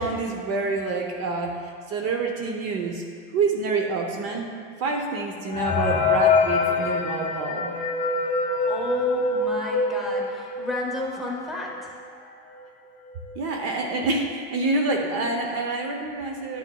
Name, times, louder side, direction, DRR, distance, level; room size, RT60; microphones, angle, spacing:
voice 1, 0.0-3.0 3.3-4.5 4.8-7.7 13.4-16.6, right 3 dB, 50° right, 2 dB, 0.8 m, -27 dB
sound 1, 5.5-11.0 11.4-11.5 11.7-11.9 12.6-12.7 13.1-13.4, left 4 dB, 25° left, 0.6 m, -24 dB
voice 2, 8.7-11.9, left 1 dB, ahead, -3 dB, 1.2 m, -32 dB
12.0 x 7.1 x 2.3 m, 2.2 s
cardioid pair, 140°, 32 cm